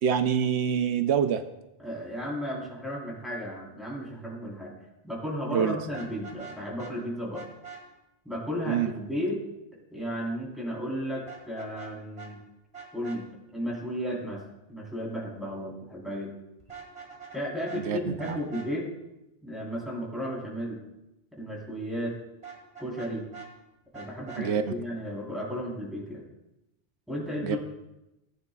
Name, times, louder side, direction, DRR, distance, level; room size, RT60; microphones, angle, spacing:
voice 1, 0.0-1.4 5.5-5.8 8.7-8.9 17.7-18.4 24.4-24.7 27.4-27.6, right 8 dB, 85° right, 9 dB, 0.9 m, -26 dB
voice 2, 1.8-4.7 5.0-7.4 8.3-9.4 9.9-12.4 12.9-13.3 13.5-14.4 14.7-16.3 17.3-18.9 19.4-20.8 21.3-22.1 22.8-23.3 23.9-26.2 27.1-27.6, equal, ahead, -4 dB, 3.7 m, -34 dB
Vehicle horn car horn honking, 5.9-6.9 7.3-7.8 11.3-11.9 12.2-12.3 12.7-13.2 16.6-17.4 17.6-17.8 18.2-18.7 22.4-23.5 23.9-24.4, right 6 dB, 35° right, 2.1 m, -44 dB
18.5 x 9.6 x 2.3 m, 0.94 s
omnidirectional pair, 1.1 m